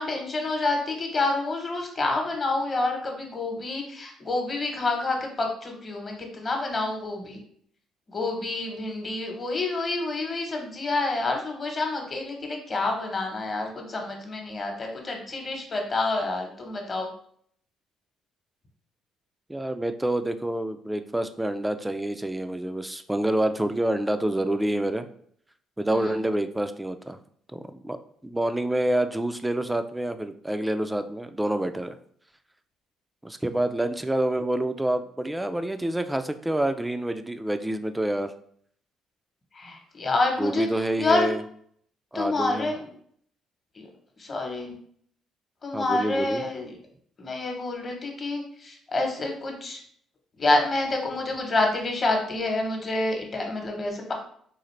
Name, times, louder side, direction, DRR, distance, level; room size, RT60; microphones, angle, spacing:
voice 1, 0.0-7.4 8.1-17.1 25.9-26.2 39.6-41.3 42.1-42.9 43.8-43.9 44.2-44.7 45.6-46.7 47.2-49.8 50.4-54.1, left 2 dB, 35° left, 2 dB, 1.0 m, -28 dB
voice 2, 19.5-25.1 25.8-27.2 27.5-28.0 28.2-32.0 33.2-38.3 40.4-41.4 42.1-42.7 45.7-46.4, right 1 dB, 10° right, 9 dB, 0.3 m, -27 dB
3.8 x 2.4 x 3.2 m, 0.62 s
cardioid pair, 90°, 0 cm